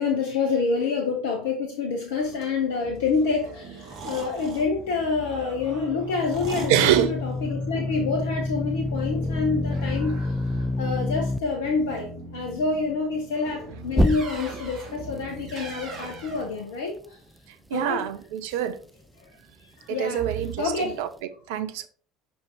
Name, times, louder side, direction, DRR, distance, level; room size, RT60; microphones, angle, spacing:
voice 1, 0.0-10.4 10.8-17.2 17.7-18.0 18.5-18.6 19.6-20.3 20.6-21.0, left 4 dB, 70° left, 0.9 m, -27 dB
sound 1, 2.2-16.6, right 3 dB, 45° right, 1.5 m, -41 dB
sound 2, 5.6-11.4 13.9-14.7, left 1 dB, 5° right, 0.4 m, -27 dB
voice 2, 6.7-7.1 17.7-18.8 19.9-21.1 21.5-21.9, right 11 dB, 65° right, 0.5 m, -25 dB
5.6 x 5.5 x 3.3 m
figure-of-eight pair, 65°, 0 cm